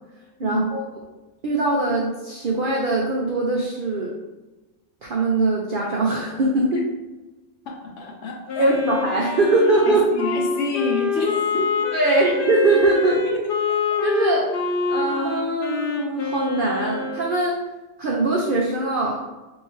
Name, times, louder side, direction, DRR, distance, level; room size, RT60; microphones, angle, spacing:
voice 1, 0.4-0.8 1.4-4.2 5.0-6.9 8.6-10.1 11.9-13.2 14.0-14.5 14.9-17.6 18.0-19.2, right 2 dB, 75° right, -3 dB, 0.4 m, -21 dB
voice 2, 7.7-8.7 9.9-11.7 12.1-12.2 13.2-13.5, left 2 dB, 65° left, 0 dB, 0.9 m, -28 dB
Wind instrument woodwind instrument, 8.5-17.3, left 5 dB, 85° left, 0.5 m, -26 dB
2.9 x 2.4 x 3.9 m, 1.1 s
omnidirectional pair, 1.5 m